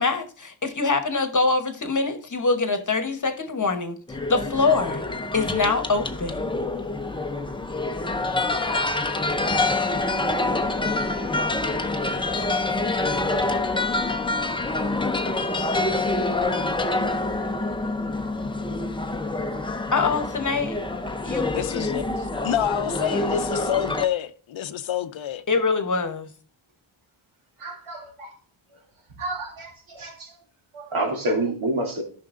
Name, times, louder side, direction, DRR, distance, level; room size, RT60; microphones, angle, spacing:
voice 1, 0.0-5.0 5.3-6.6 19.9-20.8 21.2-21.5 25.5-26.3, left 3 dB, 40° left, 1.1 m, -24 dB
sound 1, 4.1-24.1, left 2 dB, 10° left, 0.6 m, -26 dB
voice 2, 21.5-25.4, left 10 dB, 70° left, 0.7 m, -27 dB
voice 3, 27.6-28.3 29.1-30.4 30.7-32.0, right 1 dB, 75° right, 2.6 m, -28 dB
14.0 x 5.9 x 2.5 m
wide cardioid pair, 130°, 49 cm